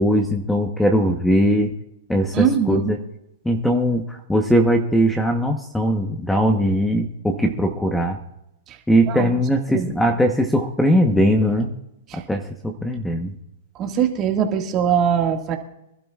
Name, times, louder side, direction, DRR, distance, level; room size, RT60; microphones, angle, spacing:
voice 1, 0.0-1.7 2.1-3.0 3.4-8.2 8.9-11.7 12.3-13.3, equal, 5° left, 5 dB, 1.0 m, -20 dB
voice 2, 2.3-2.9 8.7-8.8 9.1-9.3 9.7-10.0 12.1-12.2 13.8-15.6, right 8 dB, 30° right, 3 dB, 1.9 m, -21 dB
25.0 x 12.5 x 2.4 m, 0.85 s
hypercardioid pair, 140°, 0 cm